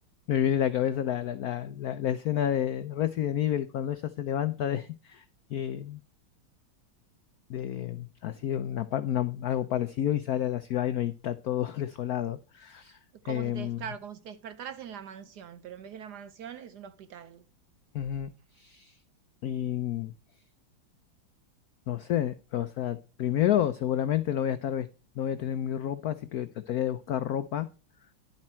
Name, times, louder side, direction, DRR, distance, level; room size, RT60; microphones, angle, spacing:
voice 1, 0.3-5.2 5.5-6.0 7.5-13.0 13.3-13.8 17.9-18.3 18.6-19.0 19.4-20.1 21.9-24.9 25.2-27.7, left 11 dB, 80° left, 0.8 m, -30 dB
voice 2, 13.2-17.4, right 8 dB, 65° right, 1.0 m, -42 dB
11.0 x 7.4 x 4.4 m
omnidirectional pair, 2.3 m